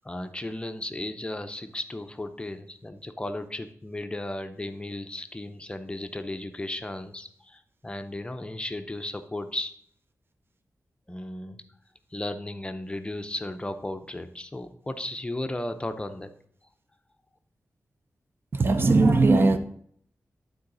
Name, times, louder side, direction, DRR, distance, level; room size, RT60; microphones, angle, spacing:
voice 1, 0.0-9.7 11.1-11.6 12.1-16.3, left 1 dB, 20° left, 0.6 m, -35 dB
voice 2, 18.5-19.6, right 3 dB, 40° right, 0.6 m, -19 dB
11.5 x 4.0 x 3.9 m
wide cardioid pair, 95°, 6 cm